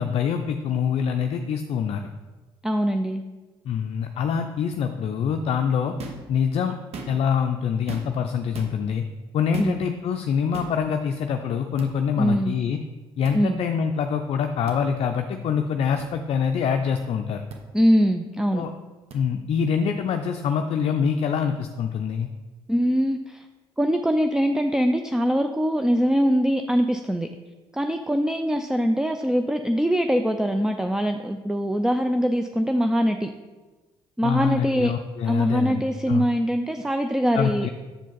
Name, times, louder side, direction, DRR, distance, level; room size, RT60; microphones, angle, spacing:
voice 1, 0.0-2.1 3.6-6.0 6.3-6.8 7.1-9.0 9.3-12.8 13.2-17.4 18.5-18.7 19.1-22.3 34.2-36.3 37.3-37.7, left 7 dB, 55° left, 6 dB, 0.4 m, -25 dB
voice 2, 2.6-3.2 9.6-9.8 12.2-12.5 13.3-13.6 17.7-18.6 22.7-23.4 23.8-27.3 27.7-33.3 34.2-34.9 35.3-37.7, equal, 5° right, 7 dB, 0.4 m, -22 dB
sound 1, 6.0-6.3 6.8-7.4 7.9-8.2 8.5-8.7 9.5-9.8 10.5-10.8 11.8-11.9 13.2-13.4 14.7-14.8 16.0-16.1 17.5-17.6 19.1-19.2, right 4 dB, 60° right, 1.0 m, -38 dB
6.6 x 4.9 x 3.9 m, 1.2 s
hypercardioid pair, 55°, 12 cm